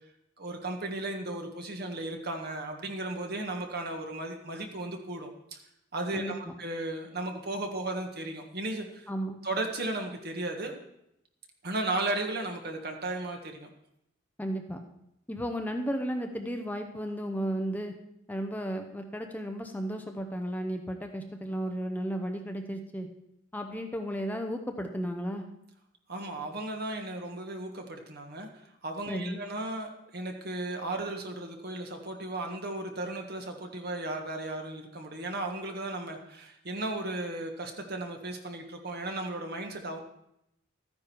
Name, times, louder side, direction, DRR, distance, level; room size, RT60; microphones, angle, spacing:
voice 1, 0.4-5.6 5.9-9.1 9.4-10.8 11.6-13.7 26.1-28.5 28.8-40.0, right 2 dB, 55° right, 3 dB, 1.7 m, -35 dB
voice 2, 6.1-6.5 9.1-9.4 14.4-14.8 15.3-17.9 18.3-23.1 23.5-25.4 29.1-29.4, equal, 10° left, 4 dB, 0.8 m, -34 dB
13.5 x 9.8 x 4.6 m, 0.80 s
head